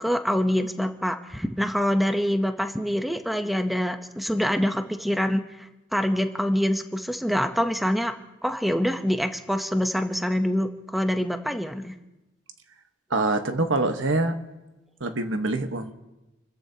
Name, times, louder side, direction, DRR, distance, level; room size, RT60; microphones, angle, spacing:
voice 1, 0.0-8.1 8.4-11.9, equal, ahead, 6 dB, 0.7 m, -25 dB
voice 2, 13.1-14.4 15.0-15.9, right 2 dB, 80° right, 7 dB, 1.2 m, -25 dB
29.0 x 14.0 x 2.8 m, 1.0 s
head